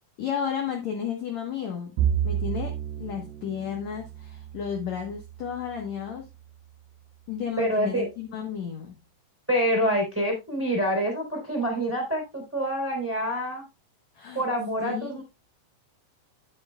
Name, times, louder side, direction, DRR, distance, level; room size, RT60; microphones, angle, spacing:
voice 1, 0.2-1.9 2.2-6.3 7.3-9.0 14.2-14.4 14.8-15.2, left 8 dB, 65° left, 2 dB, 1.9 m, -33 dB
Bowed string instrument, 2.0-6.4, right 9 dB, 85° right, 2.9 m, -31 dB
voice 2, 7.6-8.1 9.5-13.6 14.3-15.2, equal, 5° right, 1 dB, 2.9 m, -26 dB
10.5 x 9.8 x 2.3 m, 0.24 s
omnidirectional pair, 4.8 m